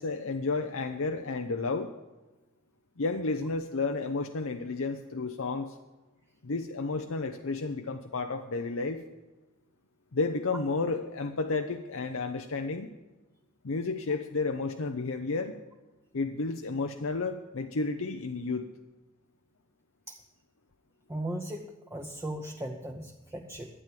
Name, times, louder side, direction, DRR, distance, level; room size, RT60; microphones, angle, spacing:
voice 1, 0.0-1.9 3.0-5.8 6.4-9.0 10.1-12.9 13.6-15.6 16.1-18.7, left 3 dB, 90° left, 5 dB, 0.7 m, -32 dB
voice 2, 21.1-23.7, right 1 dB, 15° right, 1 dB, 0.7 m, -37 dB
12.5 x 9.1 x 7.6 m, 1.1 s
head